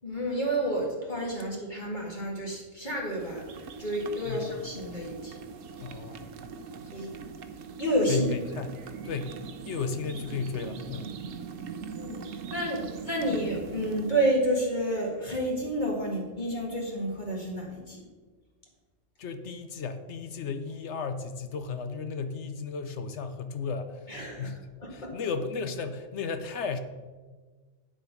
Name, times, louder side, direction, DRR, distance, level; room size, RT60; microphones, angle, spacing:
voice 1, 0.0-5.5 6.9-7.1 7.8-8.3 11.9-18.0 24.1-25.1, right 1 dB, 40° left, -2 dB, 2.0 m, -30 dB
sound 1, 3.2-14.1, right 6 dB, 85° right, 1.1 m, -41 dB
voice 2, 5.8-6.2 8.1-8.7 9.0-9.4 9.6-11.1 19.2-24.6 24.9-26.8, left 5 dB, 65° left, 9 dB, 1.0 m, -34 dB
8.9 x 7.3 x 5.2 m, 1.4 s
omnidirectional pair, 1.3 m